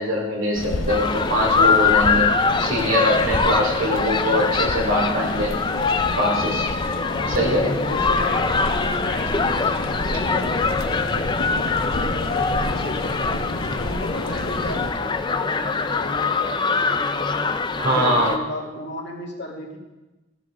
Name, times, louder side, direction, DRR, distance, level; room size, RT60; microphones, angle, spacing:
voice 1, 0.0-2.3 2.6-5.5 6.2-6.7 7.3-7.8 17.8-18.4, equal, 75° right, 0 dB, 2.6 m, -22 dB
sound 1, 0.5-14.9, left 1 dB, 75° left, 1.0 m, -30 dB
sound 2, 0.9-18.4, left 4 dB, 20° left, 0.4 m, -23 dB
voice 2, 7.1-11.5 11.9-13.5 13.8-17.5 17.8-19.8, left 2 dB, 55° left, -1 dB, 2.0 m, -34 dB
14.0 x 7.5 x 3.8 m, 1.1 s
head